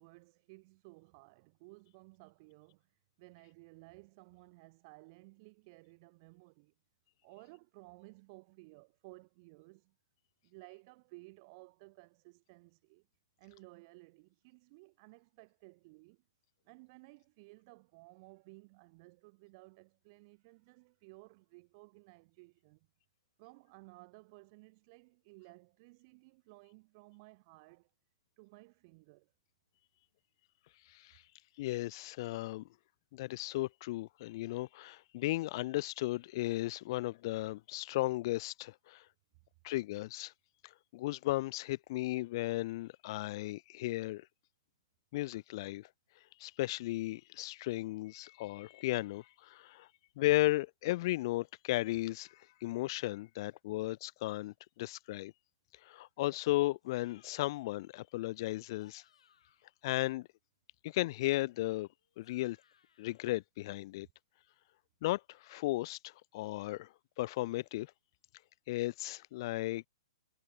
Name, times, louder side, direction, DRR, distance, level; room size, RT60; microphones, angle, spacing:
voice 1, 0.0-6.7 7.2-10.0 10.4-13.1 13.4-16.2 16.6-22.9 23.4-27.9 28.4-29.3, right 27 dB, 40° right, 1.9 m, -57 dB
voice 2, 30.9-31.2 31.6-32.7 33.1-39.0 39.6-40.3 40.6-44.3 45.1-45.9 46.4-49.9 50.2-55.3 55.8-59.0 59.8-60.3 60.8-61.9 62.2-62.6 63.0-64.1 65.0-67.9 68.7-69.8, left 18 dB, 45° left, 0.4 m, -35 dB
sound 1, 56.8-57.7 58.6-59.8 61.2-63.3, left 8 dB, 75° left, 4.7 m, -69 dB
hypercardioid pair, 145°, 3 cm